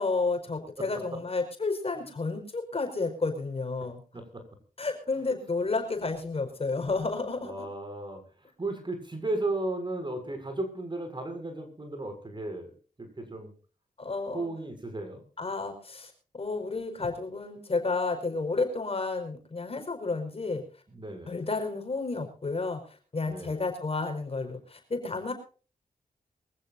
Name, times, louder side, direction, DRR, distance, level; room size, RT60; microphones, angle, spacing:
voice 1, 0.0-4.0 4.8-7.7 14.0-14.5 15.4-20.6 21.3-22.8 23.1-25.3, left 3 dB, 45° left, 5 dB, 5.3 m, -31 dB
voice 2, 3.8-4.4 7.4-8.2 8.6-12.7 13.0-13.5 14.3-15.2 20.9-21.3 23.3-23.6, right 2 dB, 35° right, 6 dB, 7.1 m, -35 dB
24.0 x 15.5 x 2.7 m, 0.39 s
cardioid pair, 65°, 14 cm